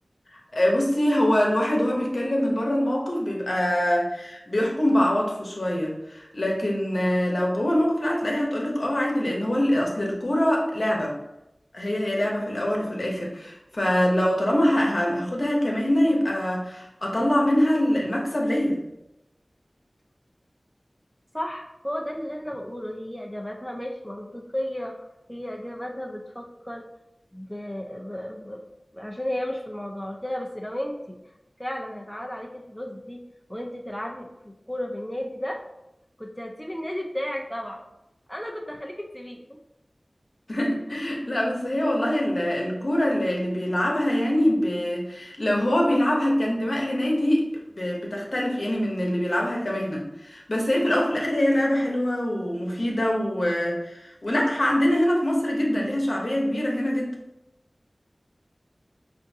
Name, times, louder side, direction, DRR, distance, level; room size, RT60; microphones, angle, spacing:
voice 1, 0.5-11.1 11.7-18.8 40.5-47.5 47.8-57.2, left 1 dB, 65° left, -1 dB, 0.9 m, -24 dB
voice 2, 21.3-26.8 27.3-28.6 28.9-31.2 31.6-33.2 33.5-35.6 36.2-37.8 38.3-39.6, equal, 10° left, 1 dB, 0.5 m, -34 dB
5.6 x 2.5 x 2.7 m, 0.89 s
wide cardioid pair, 40°, 0 cm